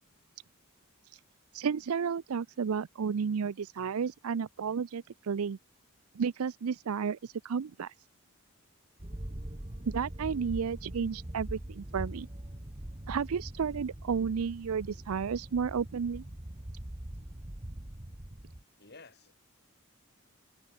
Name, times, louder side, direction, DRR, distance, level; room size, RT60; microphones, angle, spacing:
voice 1, 1.5-5.6 6.1-7.9 9.9-12.3 13.1-16.2, right 6 dB, 75° right, 0.5 m, -32 dB
sound 1, 9.0-18.6, right 1 dB, 25° right, 1.5 m, -42 dB
voice 2, 18.8-19.3, left 3 dB, 45° left, 6.4 m, -52 dB
head